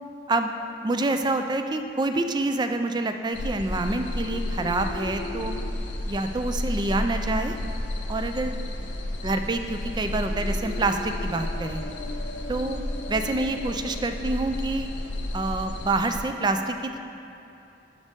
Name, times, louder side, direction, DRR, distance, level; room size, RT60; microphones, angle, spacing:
voice 1, 0.3-5.6 6.1-7.5 8.1-8.6 9.2-11.8 12.5-14.9 15.3-17.0, right 2 dB, 25° right, 7 dB, 0.4 m, -27 dB
sound 1, 3.3-16.2, left 1 dB, 90° left, 0.6 m, -32 dB
11.5 x 5.2 x 3.6 m, 2.9 s
head